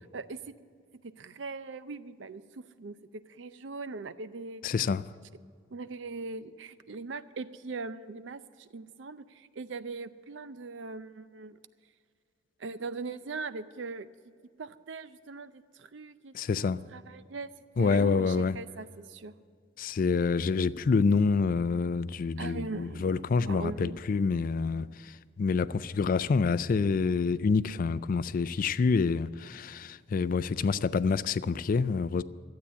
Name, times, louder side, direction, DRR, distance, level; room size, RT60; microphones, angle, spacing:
voice 1, 0.1-0.5 1.0-4.6 5.7-11.6 12.6-14.1 14.6-17.5 17.8-19.3 22.4-23.1 23.5-24.0, right 3 dB, 70° right, 0.5 m, -40 dB
voice 2, 4.6-5.0 16.3-16.8 17.8-18.6 19.8-32.2, left 4 dB, 45° left, 0.3 m, -27 dB
12.5 x 8.5 x 8.5 m
head